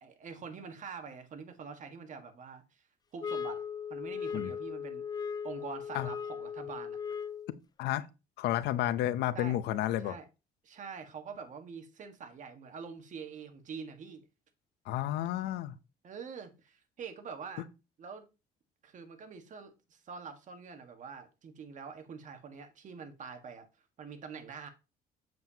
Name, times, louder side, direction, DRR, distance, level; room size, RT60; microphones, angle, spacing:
voice 1, 0.0-2.8 3.1-3.6 3.9-5.0 5.4-7.0 9.3-9.6 10.0-10.2 10.6-14.2 16.0-17.7 18.0-18.3 18.8-23.7 24.0-24.7, right 6 dB, 50° right, 1.6 m, -45 dB
sound 1, 3.2-7.6, left 7 dB, 25° left, 0.3 m, -38 dB
voice 2, 8.4-10.1 14.9-15.8, left 13 dB, 80° left, 0.7 m, -31 dB
7.7 x 7.3 x 2.9 m
cardioid pair, 110°, 17 cm